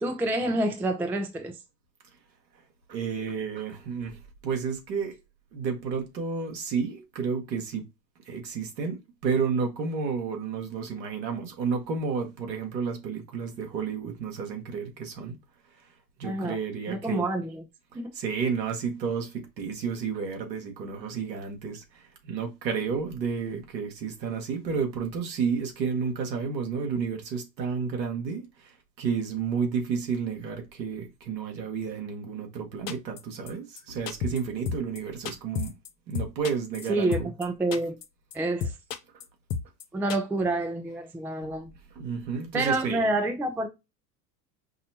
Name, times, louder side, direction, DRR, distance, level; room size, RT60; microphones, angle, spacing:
voice 1, 0.0-1.5 16.2-16.6 16.9-17.6 17.9-18.1 36.9-38.0 38.3-38.7 39.9-41.7 42.5-43.7, right 2 dB, 5° right, 0.4 m, -28 dB
voice 2, 2.9-5.2 5.5-7.8 8.3-15.4 16.2-17.2 18.1-35.7 36.1-37.3 41.9-43.1, right 6 dB, 85° right, 1.5 m, -31 dB
sound 1, 32.9-33.2 33.5-33.6 33.8-33.9 34.1-34.4 34.7-35.0 35.2-35.9 36.1-37.4 37.7-38.0 38.3-38.4 38.6-39.2 39.5-39.8 40.1-40.2, left 6 dB, 80° left, 0.8 m, -31 dB
5.4 x 2.1 x 2.8 m
hypercardioid pair, 90°, 50 cm